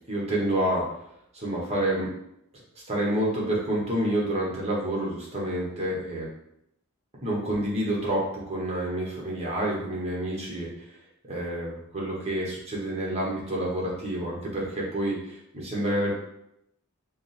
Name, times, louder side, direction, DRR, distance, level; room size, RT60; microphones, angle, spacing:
voice 1, 0.1-0.8 1.3-2.1 2.9-6.3 7.2-10.9 11.3-16.1, right 1 dB, 30° right, -4 dB, 1.3 m, -28 dB
5.0 x 2.3 x 3.4 m, 0.77 s
head